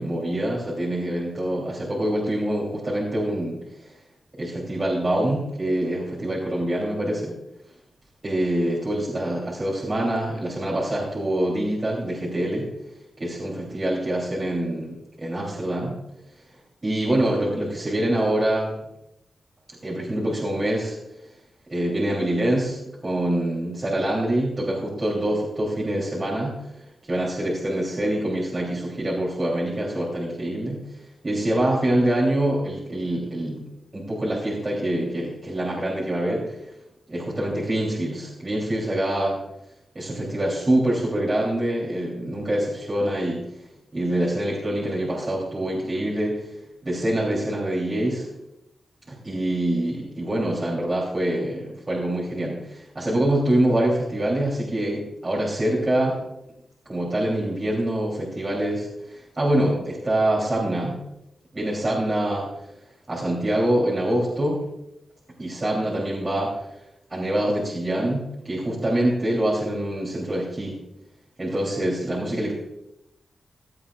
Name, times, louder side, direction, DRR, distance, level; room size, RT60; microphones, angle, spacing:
voice 1, 0.0-3.6 4.4-7.4 8.2-12.7 13.2-16.0 16.8-18.7 19.8-21.0 21.7-31.0 31.2-33.6 33.9-36.7 37.1-39.4 39.9-43.4 43.9-46.4 46.8-48.3 49.1-56.2 56.8-61.0 61.5-62.5 63.1-64.6 65.4-66.7 67.1-70.8 71.4-72.5, right 1 dB, 25° right, -6 dB, 3.3 m, -25 dB
17.0 x 12.5 x 2.5 m, 0.84 s
wide cardioid pair, 135°, 0 cm